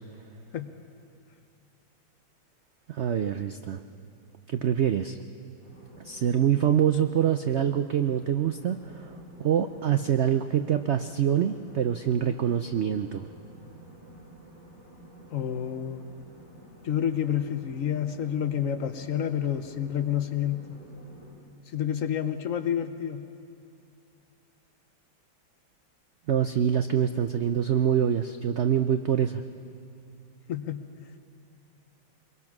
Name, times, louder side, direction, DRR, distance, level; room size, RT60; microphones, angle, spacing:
voice 1, 2.9-3.8 4.5-5.2 6.0-13.3 26.3-29.4, right 9 dB, 85° right, 8 dB, 0.6 m, -25 dB
sound 1, 5.6-21.3, right 1 dB, 40° right, 4.5 m, -51 dB
voice 2, 15.3-16.0 16.8-20.6 21.7-23.2 30.5-30.8, left 9 dB, 60° left, 9 dB, 1.0 m, -29 dB
24.0 x 22.0 x 6.0 m, 2.6 s
omnidirectional pair, 1.9 m